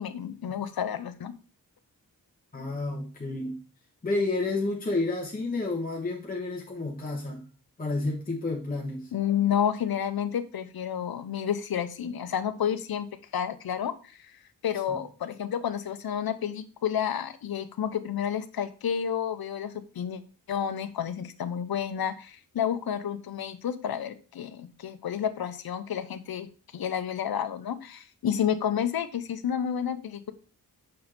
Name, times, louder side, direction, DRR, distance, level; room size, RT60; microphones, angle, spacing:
voice 1, 0.0-1.3 9.1-13.1 13.3-20.2 20.5-26.5 26.7-30.3, left 9 dB, 90° left, 11 dB, 0.8 m, -30 dB
voice 2, 2.5-3.5 4.0-7.4 7.8-9.1 14.9-15.0, left 2 dB, 25° left, -2 dB, 1.1 m, -30 dB
6.4 x 4.3 x 4.2 m, 0.36 s
wide cardioid pair, 120°, 35 cm